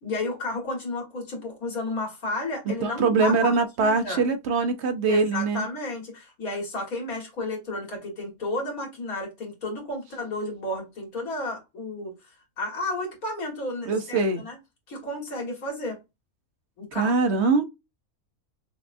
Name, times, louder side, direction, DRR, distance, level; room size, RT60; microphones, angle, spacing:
voice 1, 0.0-3.5 3.8-4.2 5.1-12.1 12.6-14.6 14.9-16.0 16.8-17.2, left 2 dB, 90° left, 2.2 m, -32 dB
voice 2, 2.8-5.7 13.9-14.4 16.9-17.6, right 4 dB, 60° right, 0.8 m, -23 dB
5.8 x 2.2 x 2.5 m
omnidirectional pair, 1.5 m